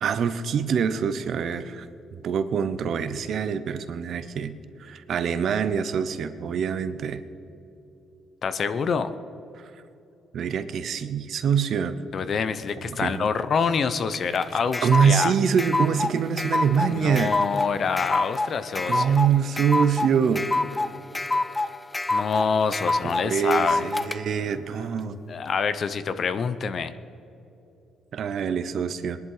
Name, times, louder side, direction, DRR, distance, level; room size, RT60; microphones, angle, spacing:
voice 1, 0.0-1.9 2.2-4.5 4.8-7.2 10.3-11.9 12.9-13.3 14.8-17.3 18.9-20.5 23.0-25.2 28.1-29.2, right 7 dB, 65° right, 11 dB, 0.9 m, -24 dB
voice 2, 8.4-9.1 12.1-15.3 16.9-19.2 22.1-23.8 25.3-26.9, left 5 dB, 55° left, 12 dB, 0.8 m, -26 dB
sound 1, 14.1-24.2, left 2 dB, 20° left, 0.5 m, -27 dB
20.5 x 11.0 x 4.9 m, 2.9 s
cardioid pair, 90°, 0 cm